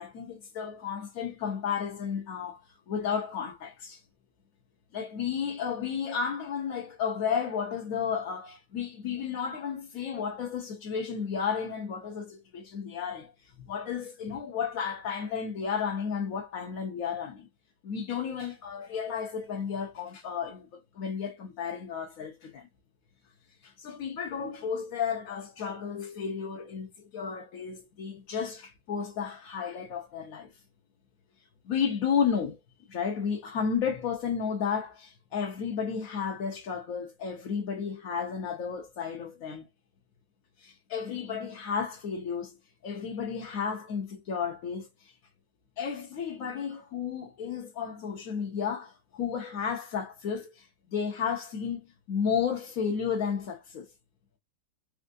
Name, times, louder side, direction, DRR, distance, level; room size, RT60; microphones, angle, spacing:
voice 1, 0.0-4.0 4.9-13.3 13.7-17.5 17.8-22.7 23.6-30.5 31.6-32.6 32.9-39.7 40.6-42.5 42.8-45.1 45.8-53.9, left 6 dB, 55° left, 1.0 m, -33 dB
4.4 x 2.5 x 2.5 m
omnidirectional pair, 2.3 m